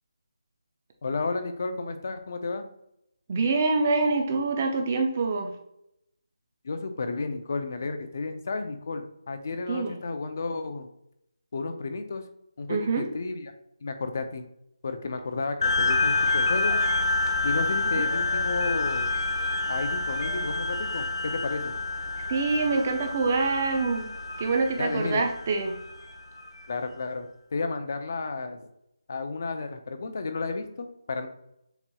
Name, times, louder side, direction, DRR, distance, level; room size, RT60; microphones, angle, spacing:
voice 1, 1.0-2.6 6.6-10.9 11.5-12.2 12.6-13.5 13.8-14.5 14.8-16.8 17.4-19.1 19.7-21.7 24.8-25.2 26.7-28.7 29.1-31.3, left 3 dB, 35° left, 7 dB, 0.5 m, -32 dB
voice 2, 3.3-5.5 9.7-9.9 12.7-13.1 17.9-18.0 22.3-24.1 24.4-25.8, right 3 dB, 20° right, 3 dB, 0.4 m, -25 dB
sound 1, 15.6-26.5, left 3 dB, 65° left, 0.9 m, -28 dB
7.0 x 2.9 x 2.3 m, 0.79 s
figure-of-eight pair, 175°, 2 cm